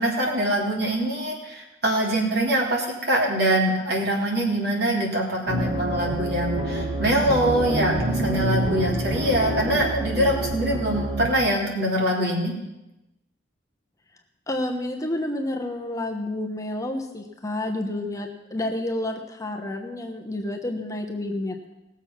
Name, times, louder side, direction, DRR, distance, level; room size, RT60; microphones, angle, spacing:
voice 1, 0.0-12.5, right 1 dB, 60° right, -2 dB, 3.1 m, -24 dB
sound 1, 5.5-11.3, right 1 dB, 30° right, 2.1 m, -27 dB
voice 2, 14.5-21.6, left 1 dB, 15° left, 2 dB, 1.0 m, -29 dB
19.0 x 7.2 x 5.9 m, 0.96 s
head